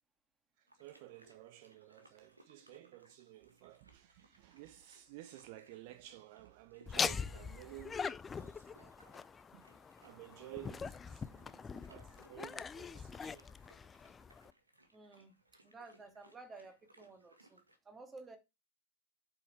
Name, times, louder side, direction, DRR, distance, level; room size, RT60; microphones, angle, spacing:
voice 1, 0.6-9.2 9.5-9.6 10.0-13.5, right 15 dB, 45° right, 0.6 m, -54 dB
sound 1, 0.7-17.8, right 1 dB, 80° right, 1.8 m, -68 dB
Laughter, 6.9-14.5, left 5 dB, 15° left, 0.5 m, -42 dB
voice 2, 14.9-15.3 15.6-18.4, right 3 dB, 15° right, 2.2 m, -54 dB
8.4 x 6.4 x 4.5 m
figure-of-eight pair, 90°, 0 cm